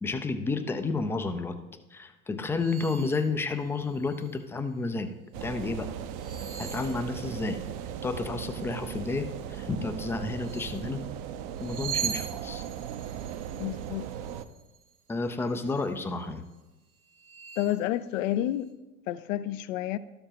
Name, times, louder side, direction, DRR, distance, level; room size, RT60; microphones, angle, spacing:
voice 1, 0.0-1.6 1.9-5.1 5.4-5.9 6.6-7.6 8.0-11.0 11.6-12.6 15.1-16.4, left 3 dB, 5° left, 0.3 m, -31 dB
sound 1, 2.6-3.3 3.7-4.4 6.0-7.7 10.3-10.9 11.5-15.0 15.4-15.9 16.5-16.6 17.1-17.8, right 9 dB, 85° right, 1.3 m, -40 dB
Wind Howling NIghttime, 5.3-14.5, right 9 dB, 45° right, 0.6 m, -38 dB
voice 2, 13.6-14.1 17.6-18.7 19.1-20.0, left 13 dB, 65° left, 0.5 m, -30 dB
12.5 x 6.9 x 2.9 m
hypercardioid pair, 85°, 43 cm